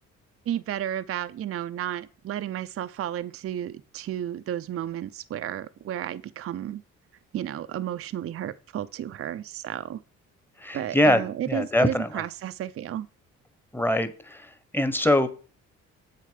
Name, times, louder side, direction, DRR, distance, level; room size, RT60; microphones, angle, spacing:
voice 1, 0.5-6.8 7.3-10.0 10.7-13.1, right 11 dB, 50° right, 0.5 m, -32 dB
voice 2, 10.6-12.1 13.7-14.5 14.7-15.3, left 1 dB, 5° left, 1.1 m, -23 dB
7.6 x 6.6 x 5.1 m
cardioid pair, 90°, 30 cm